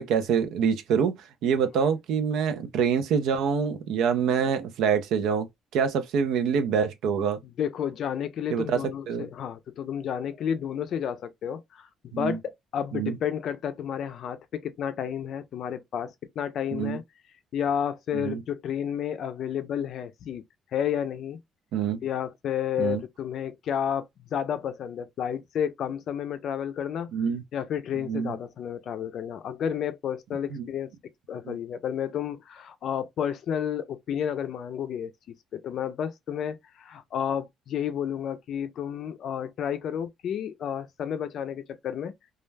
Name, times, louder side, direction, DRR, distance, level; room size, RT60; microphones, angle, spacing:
voice 1, 0.0-5.5 5.7-7.4 8.5-8.8 9.1-9.3 12.1-12.4 12.9-13.2 16.7-17.0 18.1-18.4 21.7-22.0 22.8-23.0 27.1-27.4 28.1-28.3 30.5-30.7 31.4-31.6, right 7 dB, 75° right, 0.5 m, -26 dB
voice 2, 7.6-17.0 17.5-20.4 20.7-21.4 22.0-27.1 27.5-30.9 31.3-42.1, left 8 dB, 50° left, 0.4 m, -31 dB
2.3 x 2.1 x 3.2 m
cardioid pair, 170°, 0 cm